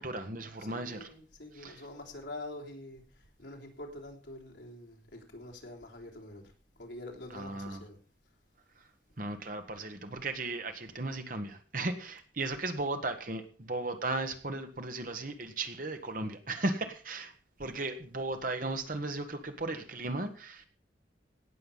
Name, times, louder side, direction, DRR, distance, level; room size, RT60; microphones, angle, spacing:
voice 1, 0.0-1.1 1.6-1.8 7.3-7.8 9.2-17.3 17.6-20.7, right 2 dB, 45° right, 1.4 m, -36 dB
voice 2, 0.6-8.0, left 1 dB, 70° left, 3.5 m, -46 dB
17.5 x 6.8 x 5.6 m
head